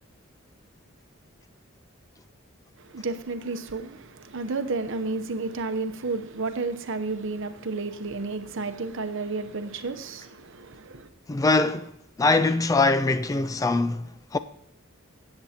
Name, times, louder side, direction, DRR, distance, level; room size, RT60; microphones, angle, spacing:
voice 1, 2.8-11.1, right 3 dB, 65° right, 0.8 m, -32 dB
voice 2, 11.3-11.9 12.2-14.1 14.3-14.4, left 3 dB, 15° left, 0.3 m, -22 dB
17.5 x 7.9 x 2.9 m
head